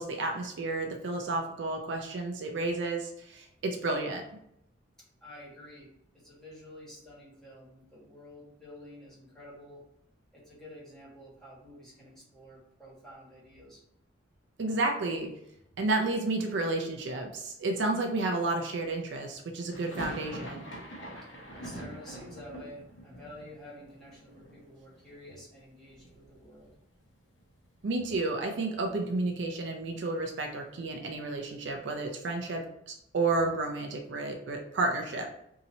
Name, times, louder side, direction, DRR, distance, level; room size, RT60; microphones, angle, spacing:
voice 1, 0.0-4.2 14.6-15.3 15.8-20.7 27.8-35.3, right 2 dB, 65° right, 2 dB, 0.4 m, -31 dB
voice 2, 5.2-9.8 10.3-13.8 21.6-26.7, left 1 dB, 5° left, -7 dB, 1.4 m, -50 dB
sound 1, 19.7-25.6 25.9-26.7 27.0-27.1 27.4-29.5, right 1 dB, 65° left, 0.9 m, -45 dB
2.8 x 2.7 x 4.0 m, 0.77 s
head